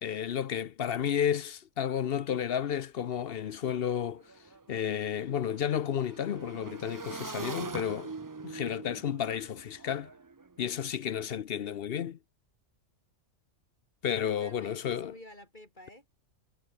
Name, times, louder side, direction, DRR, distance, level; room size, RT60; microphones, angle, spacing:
voice 1, 0.0-4.2 4.7-8.1 8.4-10.1 10.6-12.2 14.0-15.1, left 9 dB, 55° left, 0.8 m, -32 dB
Motorcycle / Engine, 3.2-3.3 3.6-10.8, right 4 dB, 35° right, 0.3 m, -43 dB
voice 2, 14.2-16.1, left 1 dB, 35° left, 4.4 m, -50 dB
omnidirectional pair, 1.4 m